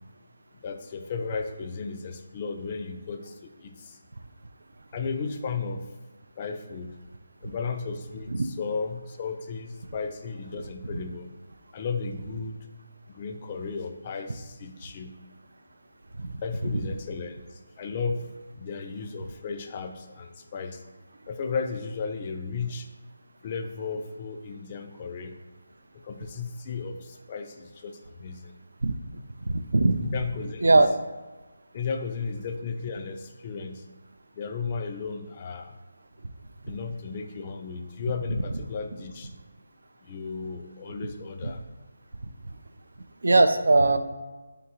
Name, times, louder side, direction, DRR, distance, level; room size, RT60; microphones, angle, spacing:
voice 1, 0.6-3.3 3.6-3.7 4.9-5.9 6.4-6.9 7.4-11.3 11.7-12.6 13.1-15.2 16.4-17.4 17.8-18.3 18.6-20.8 21.3-22.9 23.4-25.3 26.1-27.0 27.3-28.4 30.0-30.9 31.7-33.8 34.4-35.7 36.7-39.3 40.1-41.6, left 5 dB, 30° left, 6 dB, 0.3 m, -34 dB
voice 2, 43.2-44.0, right 2 dB, 70° right, 9 dB, 0.3 m, -19 dB
3.8 x 3.6 x 2.8 m, 1.2 s
figure-of-eight pair, 155°, 0 cm